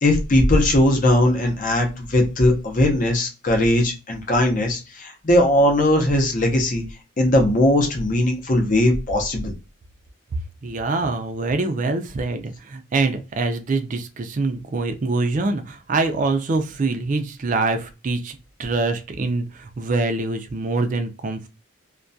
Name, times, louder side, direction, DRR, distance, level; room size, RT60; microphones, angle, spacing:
voice 1, 0.0-6.8 7.2-9.5, left 1 dB, 40° left, 2 dB, 0.6 m, -19 dB
voice 2, 10.6-21.5, right 3 dB, 40° right, 7 dB, 0.3 m, -24 dB
2.2 x 2.2 x 2.5 m, 0.30 s
head